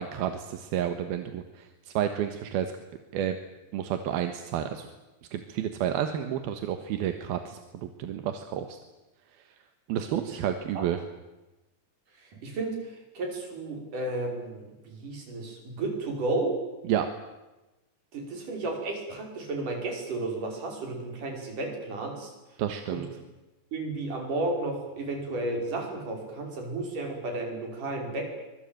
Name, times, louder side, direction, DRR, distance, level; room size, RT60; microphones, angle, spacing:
voice 1, 0.0-2.7 3.1-3.4 3.7-4.9 5.3-8.8 9.9-11.0 16.9-17.1 22.6-23.1, right 10 dB, 85° right, 8 dB, 3.3 m, -30 dB
voice 2, 12.2-16.6 18.1-22.3 22.9-23.1 23.7-28.3, right 2 dB, 60° right, 2 dB, 7.1 m, -33 dB
25.0 x 22.0 x 9.2 m, 1.1 s
omnidirectional pair, 4.3 m